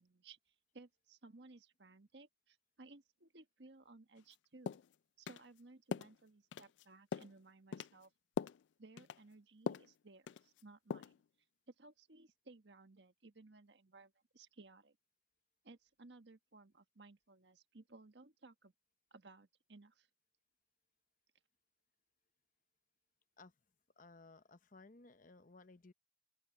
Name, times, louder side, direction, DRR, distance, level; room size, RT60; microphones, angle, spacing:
voice 1, 0.0-4.8 5.2-8.1 8.8-11.2 11.7-15.0 15.6-18.7 19.1-20.1, right 3 dB, 80° right, 1.4 m, -60 dB
sound 1, 4.2-4.3 4.7-4.9 5.3-5.4 5.9-6.1 6.5-6.8 7.1-7.4 7.7-8.0 8.4-8.6 9.0-9.2 9.7-9.9 10.3-10.6 10.9-11.2, left 6 dB, 85° left, 0.3 m, -41 dB
voice 2, 24.0-25.9, left 3 dB, 50° left, 0.9 m, -60 dB
open air
head